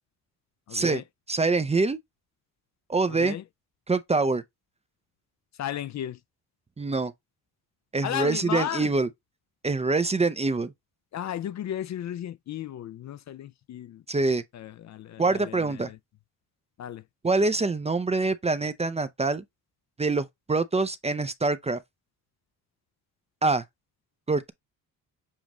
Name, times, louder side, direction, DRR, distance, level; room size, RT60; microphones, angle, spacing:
voice 1, 0.7-1.0 3.1-3.4 5.6-6.2 8.0-8.9 11.1-14.0 14.5-16.0 16.8-17.0, left 11 dB, 50° left, 0.5 m, -34 dB
voice 2, 1.3-2.0 2.9-3.4 3.9-4.4 6.8-7.1 7.9-9.1 9.6-10.7 14.1-14.4 15.2-15.9 17.2-19.4 20.0-21.8 23.4-23.6 24.3-24.5, right 3 dB, 15° right, 0.5 m, -25 dB
7.3 x 2.5 x 3.0 m
cardioid pair, 85°, 38 cm